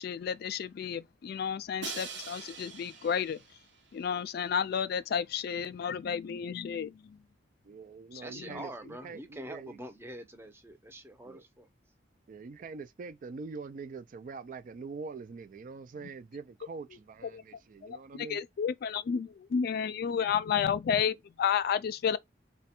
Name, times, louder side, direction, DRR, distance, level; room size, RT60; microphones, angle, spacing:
voice 1, 0.0-3.4 3.9-7.2 8.1-8.6 17.3-17.4 17.8-22.2, left 7 dB, 60° left, 0.3 m, -32 dB
Crash cymbal, 1.8-3.8, right 5 dB, 90° right, 0.9 m, -43 dB
voice 2, 7.6-9.8 11.3-11.4 12.3-18.4, right 4 dB, 50° right, 0.4 m, -44 dB
voice 3, 8.2-11.7, equal, 15° right, 0.6 m, -45 dB
3.3 x 2.2 x 4.2 m
head